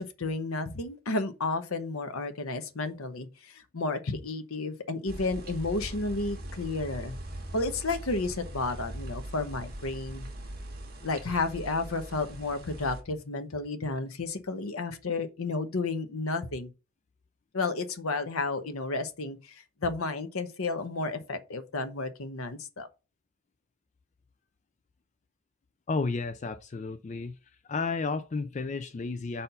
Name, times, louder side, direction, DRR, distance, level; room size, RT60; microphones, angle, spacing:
voice 1, 0.0-7.2 7.5-10.3 11.0-16.7 17.5-22.9, left 3 dB, 80° left, 0.9 m, -32 dB
sound 1, 5.1-13.0, right 1 dB, 45° right, 1.8 m, -41 dB
voice 2, 25.9-27.4 27.6-29.4, left 4 dB, 35° left, 0.3 m, -32 dB
5.2 x 4.3 x 5.4 m
head